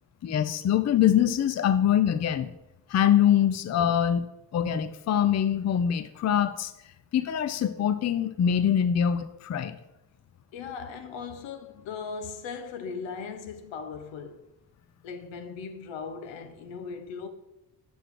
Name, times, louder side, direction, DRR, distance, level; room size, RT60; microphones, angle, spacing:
voice 1, 0.2-2.5 2.9-4.2 4.5-6.7 7.1-9.8, left 9 dB, 40° left, 0.5 m, -24 dB
voice 2, 10.5-14.5 15.0-17.3, left 5 dB, 85° left, 0.9 m, -38 dB
6.2 x 4.9 x 4.7 m
cardioid pair, 70°, 44 cm